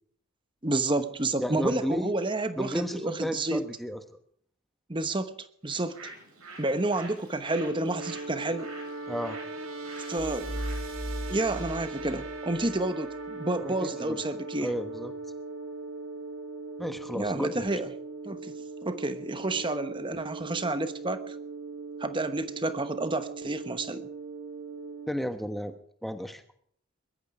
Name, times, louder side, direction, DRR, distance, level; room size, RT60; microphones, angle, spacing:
voice 1, 0.6-3.6 4.9-6.0 6.6-8.7 10.1-10.6 11.3-14.7 17.2-17.9 18.2-18.5 18.8-21.4 22.0-24.1, right 2 dB, 20° right, 10 dB, 1.0 m, -30 dB
voice 2, 1.4-2.1 2.6-4.0 9.1-9.4 13.6-13.7 14.0-14.2 14.6-15.1 16.8-17.7 25.1-25.7 26.0-26.4, equal, ahead, 7 dB, 1.1 m, -32 dB
Bird, 5.6-11.8, right 3 dB, 80° right, 7.4 m, -48 dB
sound 1, 7.5-25.1, right 3 dB, 60° right, 2.3 m, -39 dB
sound 2, 10.2-12.8, equal, 40° right, 2.2 m, -37 dB
21.5 x 13.5 x 4.9 m, 0.62 s
head